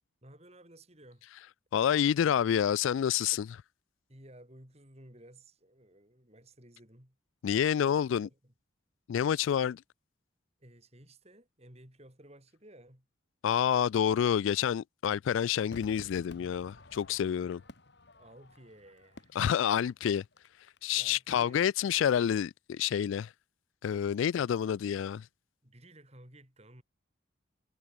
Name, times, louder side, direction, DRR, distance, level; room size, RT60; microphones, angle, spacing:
voice 1, 0.2-1.3 4.1-7.2 7.8-8.5 10.6-13.1 17.4-17.5 18.2-19.4 21.0-21.6 25.6-26.8, right 1 dB, 30° right, 5.9 m, -55 dB
voice 2, 1.7-3.6 7.4-8.3 9.1-9.8 13.4-17.6 19.4-20.2 20.8-23.3 23.8-25.2, left 9 dB, 75° left, 0.3 m, -28 dB
Crowd / Fireworks, 15.7-21.1 21.4-21.5, left 2 dB, 55° left, 1.8 m, -53 dB
head